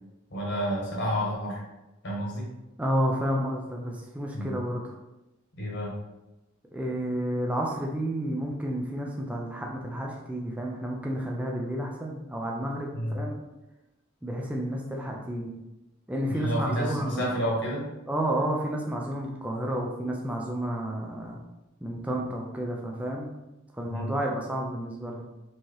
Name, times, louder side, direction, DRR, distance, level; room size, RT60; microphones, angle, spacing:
voice 1, 0.3-1.6 2.0-2.5 4.3-4.6 5.6-5.9 12.9-13.2 16.3-17.9 23.9-24.1, equal, 60° left, -4 dB, 1.3 m, -30 dB
voice 2, 2.8-5.0 6.7-13.4 14.2-15.6 16.1-17.4 18.1-21.4 21.8-23.4 23.7-25.3, right 1 dB, 5° right, -1 dB, 0.4 m, -31 dB
4.5 x 2.8 x 3.1 m, 0.98 s
head